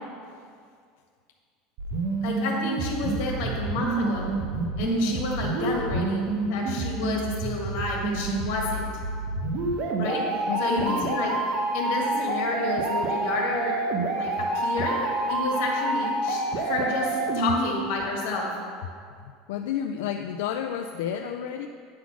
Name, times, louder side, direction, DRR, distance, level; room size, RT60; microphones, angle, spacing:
sound 1, 1.8-17.8, right 3 dB, 45° right, 0.8 m, -28 dB
voice 1, 2.2-4.4 4.8-8.9 10.0-10.2 10.6-11.3 11.7-13.8 14.1-15.0 15.3-18.5, left 3 dB, 65° left, -1 dB, 1.9 m, -30 dB
voice 2, 10.5-11.1 19.2-21.7, left 8 dB, 90° left, 4 dB, 0.4 m, -31 dB
9.5 x 4.1 x 5.9 m, 2.1 s
cardioid pair, 165°, 0 cm